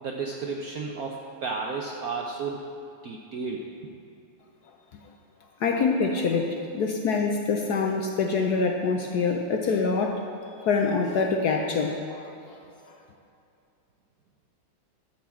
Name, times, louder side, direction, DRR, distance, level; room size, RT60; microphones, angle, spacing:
voice 1, 0.0-2.7 3.0-3.9, right 4 dB, 70° right, 1 dB, 0.8 m, -33 dB
voice 2, 5.6-10.2 10.6-12.6 12.9-13.0, left 4 dB, 65° left, 2 dB, 1.0 m, -25 dB
13.0 x 4.7 x 7.2 m, 2.6 s
omnidirectional pair, 2.3 m